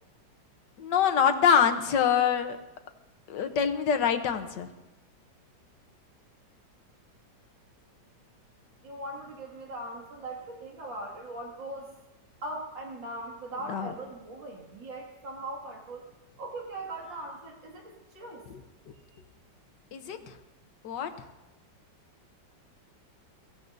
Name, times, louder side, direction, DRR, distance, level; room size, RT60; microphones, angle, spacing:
voice 1, 0.8-2.6 3.3-4.7 13.7-13.9 18.5-18.6 19.9-20.3 20.8-21.1, left 7 dB, 70° left, 8 dB, 1.6 m, -25 dB
voice 2, 8.8-11.9 12.4-16.0 16.4-18.4, right 2 dB, 80° right, -2 dB, 3.0 m, -40 dB
23.5 x 16.0 x 2.7 m, 1.0 s
omnidirectional pair, 2.0 m